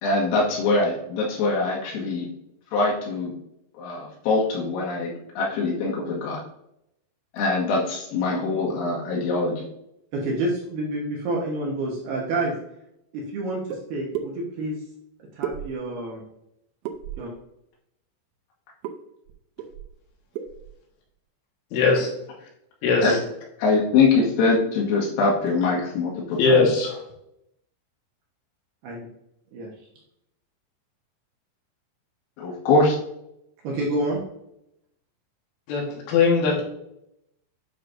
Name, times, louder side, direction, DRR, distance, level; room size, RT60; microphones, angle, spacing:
voice 1, 0.0-2.3 2.7-3.3 3.8-6.4 7.3-9.6 23.0-23.1 23.6-26.7 32.4-33.0, left 3 dB, 90° left, -3 dB, 4.5 m, -23 dB
voice 2, 10.1-12.5 13.1-14.8 15.4-16.2 17.2-17.3 28.8-29.1 29.5-29.7 33.6-34.2, right 2 dB, 70° right, -3 dB, 2.6 m, -28 dB
sound 1, 13.7-13.8 14.1-14.3 15.4-16.0 16.8-17.3 18.8-19.0 19.3-19.4 19.6-20.0 20.3-20.7, right 9 dB, 90° right, 2.4 m, -32 dB
voice 3, 21.7-22.1 22.8-23.2 26.4-27.0 35.7-36.7, left 4 dB, 75° left, -1 dB, 3.8 m, -20 dB
9.6 x 6.2 x 2.6 m, 0.80 s
omnidirectional pair, 5.8 m